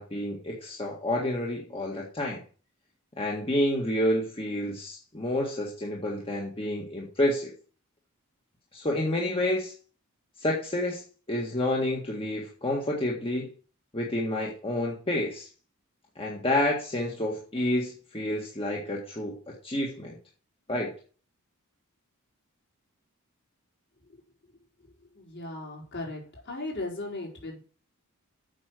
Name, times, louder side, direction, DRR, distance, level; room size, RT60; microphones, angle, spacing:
voice 1, 0.0-2.4 3.2-7.5 8.7-9.7 10.4-11.0 11.3-13.5 13.9-15.5 16.1-19.4 19.6-20.1 20.7-20.9, left 1 dB, 25° left, -2 dB, 1.7 m, -29 dB
voice 2, 25.1-27.6, left 2 dB, 50° left, -2 dB, 4.9 m, -37 dB
8.5 x 6.2 x 6.6 m, 0.39 s
head